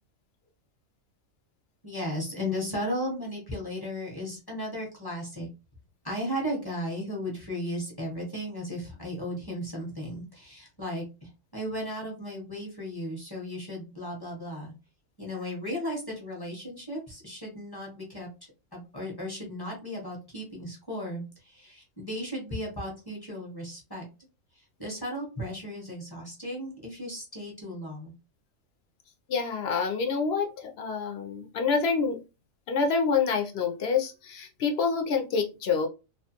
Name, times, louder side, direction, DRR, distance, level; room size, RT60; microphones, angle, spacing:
voice 1, 1.8-5.5 6.0-14.7 15.2-18.3 18.7-24.1 24.5-28.1, equal, 20° left, -2 dB, 0.7 m, -35 dB
voice 2, 29.3-32.2 32.7-35.9, left 5 dB, 65° left, 4 dB, 0.6 m, -27 dB
2.4 x 2.2 x 2.8 m, 0.29 s
omnidirectional pair, 1.4 m